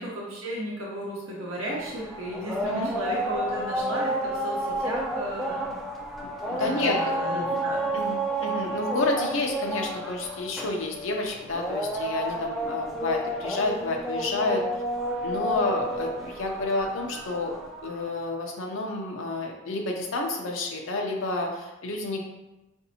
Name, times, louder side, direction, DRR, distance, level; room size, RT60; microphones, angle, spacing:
voice 1, 0.0-5.8 6.6-7.9, right 1 dB, 80° right, -5 dB, 0.8 m, -34 dB
sound 1, 1.7-18.1, right 1 dB, ahead, 0.3 m, -31 dB
voice 2, 6.5-7.6 7.9-14.6 15.2-17.5 17.8-22.2, left 2 dB, 70° left, 1 dB, 0.5 m, -30 dB
5.0 x 2.6 x 2.7 m, 0.99 s
head